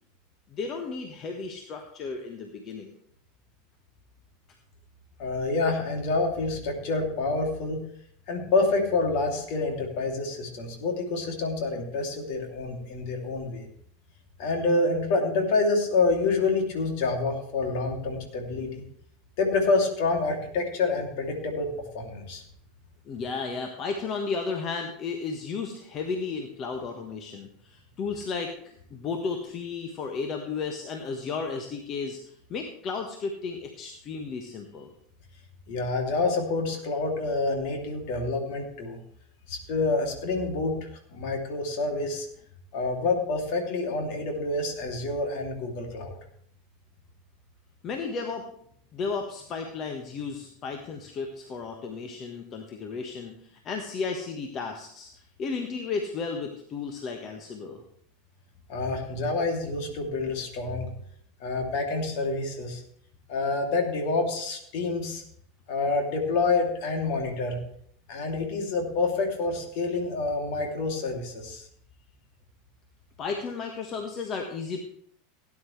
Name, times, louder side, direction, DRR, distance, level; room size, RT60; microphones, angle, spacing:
voice 1, 0.5-2.9 23.1-34.9 47.8-48.5 48.9-57.8 73.2-74.8, left 4 dB, 40° left, 4 dB, 1.5 m, -34 dB
voice 2, 5.2-7.8 8.3-13.7 14.4-18.8 19.4-21.7 21.9-22.4 35.7-39.0 39.5-42.3 42.7-46.2 58.7-60.9 61.4-62.8 63.3-65.2 65.7-67.6 68.1-71.7, left 3 dB, 60° left, 2 dB, 2.9 m, -27 dB
17.5 x 9.9 x 3.3 m, 0.66 s
figure-of-eight pair, 80°, 0 cm